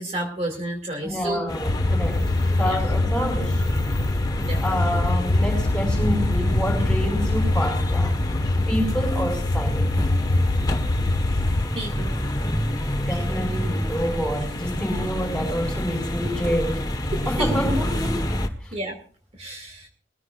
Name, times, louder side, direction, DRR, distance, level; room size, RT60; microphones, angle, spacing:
voice 1, 0.0-1.4 2.7-2.8 4.4-4.6 11.7-12.1 17.1-17.5 18.7-19.0 19.4-19.9, right 1 dB, 35° right, 2 dB, 2.5 m, -30 dB
voice 2, 1.0-3.6 4.6-8.2 8.7-9.9 13.1-16.9 17.3-18.2 18.6-18.8, equal, 5° left, 3 dB, 5.6 m, -28 dB
sound 1, 1.5-18.5, left 1 dB, 20° left, 1.4 m, -28 dB
sound 2, 1.7-11.7, left 2 dB, 90° left, 0.9 m, -24 dB
22.5 x 15.5 x 2.5 m, 0.42 s
head